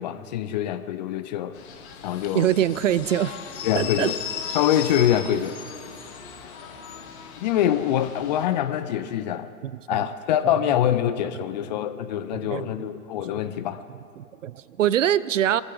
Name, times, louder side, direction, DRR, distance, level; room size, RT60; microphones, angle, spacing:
voice 1, 0.0-1.6 2.0-2.5 3.6-4.2 4.5-5.6 7.4-9.5 9.9-13.8, left 11 dB, 30° left, 12 dB, 0.5 m, -24 dB
sound 1, 1.5-8.5, left 7 dB, 45° left, 2.0 m, -37 dB
voice 2, 2.3-3.3 3.8-4.1 9.9-10.0 12.3-12.7 14.2-15.6, right 11 dB, 55° right, 18 dB, 0.5 m, -23 dB
23.0 x 14.5 x 3.4 m, 2.3 s
figure-of-eight pair, 100°, 45 cm